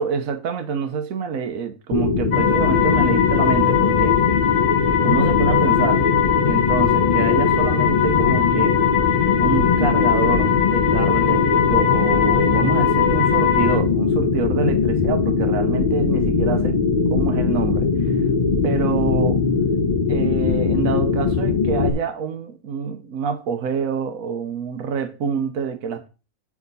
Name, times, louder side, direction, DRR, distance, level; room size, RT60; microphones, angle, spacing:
voice 1, 0.0-4.2 5.0-6.1 6.4-8.8 9.3-16.8 17.1-18.2 18.6-19.4 20.1-26.1, right 6 dB, 70° right, 1.3 m, -26 dB
sound 1, 1.9-21.9, left 5 dB, 35° left, 0.7 m, -20 dB
sound 2, 2.3-13.8, left 10 dB, 55° left, 1.3 m, -21 dB
8.6 x 5.0 x 4.1 m
omnidirectional pair, 1.6 m